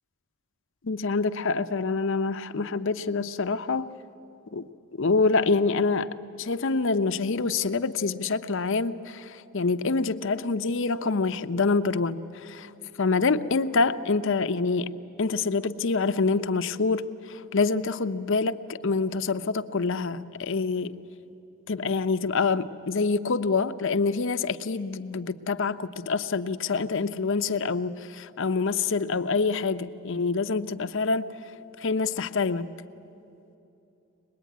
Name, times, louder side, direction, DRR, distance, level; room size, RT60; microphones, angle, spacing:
voice 1, 0.8-3.9 4.5-4.7 5.0-6.1 6.4-12.7 13.0-21.0 21.7-31.3 31.8-32.7, left 4 dB, 60° left, 10 dB, 0.7 m, -26 dB
24.0 x 20.5 x 9.4 m, 2.8 s
head